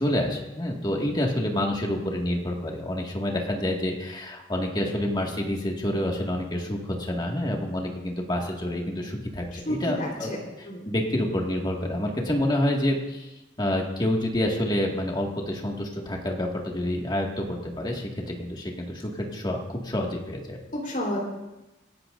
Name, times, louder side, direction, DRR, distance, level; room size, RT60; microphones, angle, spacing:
voice 1, 0.0-10.3 10.9-13.3 13.6-20.6, left 1 dB, 25° left, 0 dB, 2.0 m, -28 dB
voice 2, 9.5-10.4 10.6-10.9 20.7-21.2, left 1 dB, 50° left, -1 dB, 3.9 m, -30 dB
26.0 x 12.0 x 2.6 m, 1.0 s
head